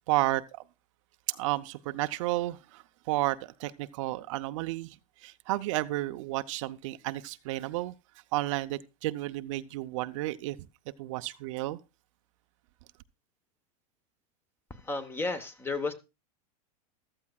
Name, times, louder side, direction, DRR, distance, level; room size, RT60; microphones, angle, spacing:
voice 1, 0.1-0.6 1.3-7.9 8.3-10.6 11.0-11.8, right 17 dB, 55° right, 0.6 m, -32 dB
voice 2, 14.7-15.9, left 3 dB, 10° left, 1.1 m, -33 dB
14.5 x 13.5 x 2.3 m
supercardioid pair, 155°, 19 cm